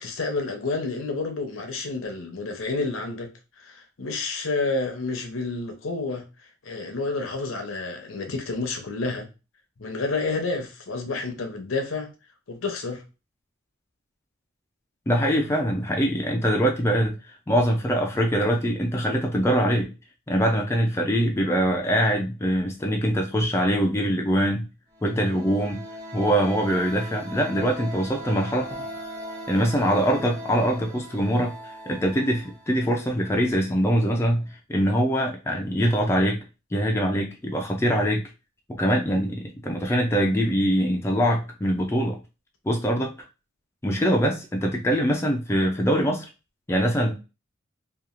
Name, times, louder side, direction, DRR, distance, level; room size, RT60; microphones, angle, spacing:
voice 1, 0.0-3.3 3.6-6.2 6.6-9.3 9.8-12.1 12.5-13.0, left 3 dB, 70° left, 0.7 m, -29 dB
voice 2, 15.1-19.9 20.3-24.7 25.0-25.8 26.1-28.7 29.5-36.4 36.7-38.2 38.7-42.2 42.6-43.1 43.8-46.2 46.7-47.1, equal, 15° left, 0.4 m, -23 dB
sound 1, 24.9-33.5, equal, 25° right, 0.9 m, -39 dB
2.9 x 2.3 x 2.5 m
head